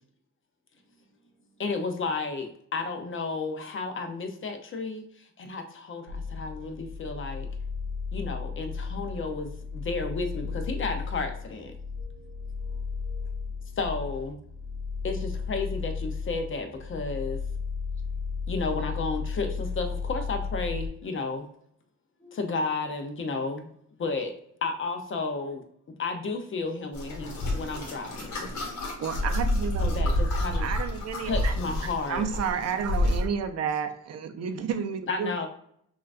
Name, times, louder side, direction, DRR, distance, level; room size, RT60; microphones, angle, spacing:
voice 1, 0.7-1.6 12.0-13.8 22.2-22.6 29.0-29.3, left 3 dB, 15° left, -6 dB, 0.9 m, -58 dB
voice 2, 1.6-7.5 8.1-11.7 13.8-14.4 15.0-17.4 18.5-21.5 22.3-23.7 24.0-24.3 24.6-25.6 26.0-28.5 29.8-30.7 31.2-32.3 35.1-35.5, left 3 dB, 40° left, 5 dB, 0.6 m, -32 dB
sound 1, 6.1-20.9, left 5 dB, 75° right, 0.8 m, -34 dB
sound 2, 26.9-33.2, left 1 dB, 65° left, 1.3 m, -29 dB
voice 3, 29.0-29.8 30.6-31.5 32.1-35.3, right 7 dB, 55° right, 8 dB, 0.5 m, -31 dB
5.5 x 2.4 x 2.4 m, 0.69 s
cardioid pair, 135°, 32 cm